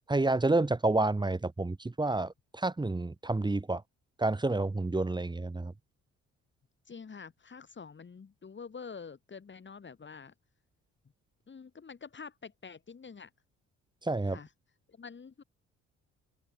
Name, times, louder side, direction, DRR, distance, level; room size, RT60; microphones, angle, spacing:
voice 1, 0.1-3.8 4.2-5.7 14.0-14.4, right 2 dB, 15° right, 1.5 m, -29 dB
voice 2, 6.9-10.3 11.5-13.3 14.3-14.5 14.9-15.4, left 5 dB, 40° left, 7.8 m, -47 dB
open air
cardioid pair, 90°, 30 cm